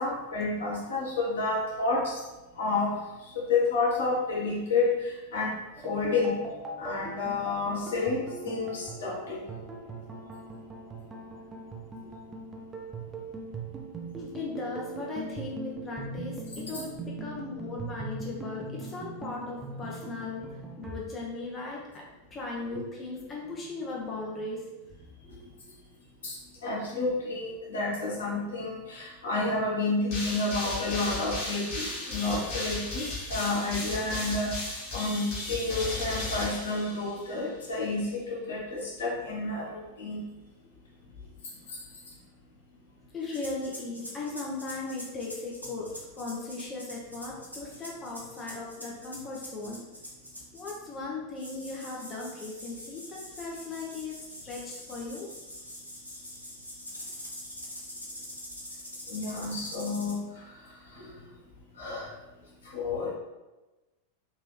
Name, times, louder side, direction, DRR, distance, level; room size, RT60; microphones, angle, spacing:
voice 1, 0.0-2.2 2.5-5.6 5.8-6.4 6.8-9.4 22.7-22.8 25.3-25.4 26.2-33.0 33.3-40.2 41.7-41.8 59.1-60.5 60.9-61.1 61.8-62.1 62.6-63.1, left 3 dB, 65° left, -4 dB, 1.1 m, -30 dB
sound 1, 5.8-21.0, right 3 dB, 15° right, 0.6 m, -40 dB
voice 2, 14.2-22.0 22.3-25.0 40.6-40.7 43.1-49.8 50.5-55.3 58.1-58.2, left 3 dB, 25° left, -3 dB, 0.7 m, -38 dB
sound 2, 30.1-37.4, left 2 dB, 45° left, 1.3 m, -35 dB
sound 3, 43.3-50.9 51.4-60.2, left 1 dB, 90° right, 0.9 m, -44 dB
3.6 x 3.0 x 3.1 m, 1.1 s
figure-of-eight pair, 90°, 0 cm